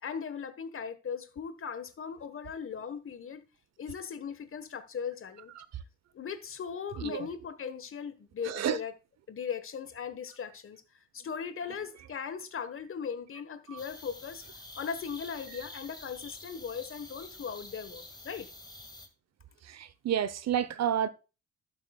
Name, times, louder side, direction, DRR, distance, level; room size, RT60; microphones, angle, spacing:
voice 1, 0.0-3.4 3.8-5.5 6.1-8.9 9.3-14.4 14.7-18.5, left 6 dB, 45° left, 1.3 m, -38 dB
voice 2, 7.0-7.3 8.4-8.8 13.7-13.8 19.6-21.1, right 9 dB, 60° right, 0.8 m, -31 dB
sound 1, 13.8-19.1, left 2 dB, 15° left, 1.9 m, -48 dB
12.0 x 8.0 x 2.3 m
cardioid pair, 90°, 30 cm